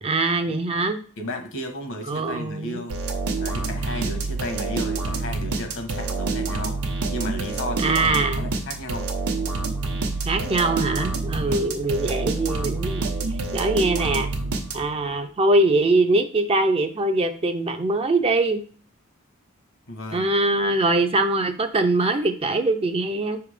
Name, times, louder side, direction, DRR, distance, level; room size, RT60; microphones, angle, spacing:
voice 1, 0.0-1.0 2.1-2.9 7.8-8.5 10.2-13.1 13.5-14.3 14.7-18.6 20.1-23.4, right 2 dB, 25° right, 0.5 m, -22 dB
voice 2, 1.2-3.0 3.3-9.1 11.4-11.7 19.9-20.3, left 1 dB, 60° left, 1.2 m, -34 dB
sound 1, 2.9-15.1, right 3 dB, 85° right, 1.0 m, -27 dB
5.6 x 3.5 x 5.0 m
head